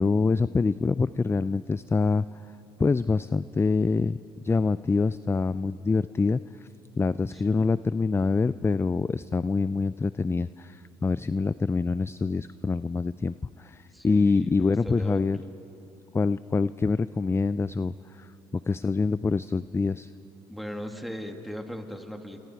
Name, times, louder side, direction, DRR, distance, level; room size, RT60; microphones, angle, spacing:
voice 1, 0.0-2.2 2.8-4.2 4.4-6.4 7.0-15.4 16.1-20.1, left 4 dB, 20° left, 16 dB, 0.4 m, -25 dB
voice 2, 7.3-7.8 13.9-15.5 20.5-22.5, equal, ahead, 3 dB, 2.8 m, -39 dB
29.5 x 27.0 x 4.7 m, 3.0 s
supercardioid pair, 60°, 12 cm